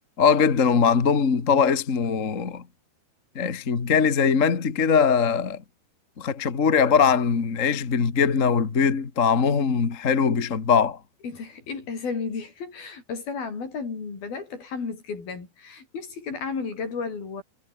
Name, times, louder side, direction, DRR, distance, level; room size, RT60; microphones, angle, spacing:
voice 1, 0.2-2.6 3.3-5.6 6.2-11.0, left 6 dB, 35° left, 1.4 m, -21 dB
voice 2, 11.2-17.4, left 5 dB, 70° left, 7.8 m, -33 dB
omnidirectional pair, 4.5 m